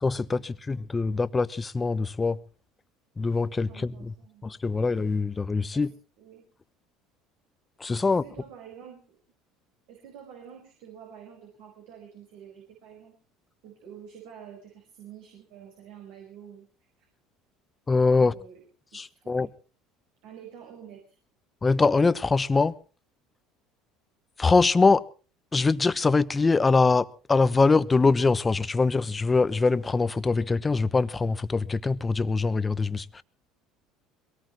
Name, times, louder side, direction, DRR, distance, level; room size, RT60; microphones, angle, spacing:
voice 1, 0.0-2.4 3.2-4.1 4.4-5.9 7.8-8.2 17.9-18.3 18.9-19.5 21.6-22.7 24.4-25.0 25.5-33.2, left 4 dB, 20° left, 1.0 m, -23 dB
voice 2, 3.7-4.4 5.7-5.9 6.2-6.4 8.0-9.2 9.9-13.2 13.6-16.7 17.0-17.1 18.1-18.6 18.9-19.3 20.2-21.2, right 8 dB, 75° right, 4.9 m, -48 dB
22.5 x 18.0 x 3.1 m
hypercardioid pair, 75°, 0 cm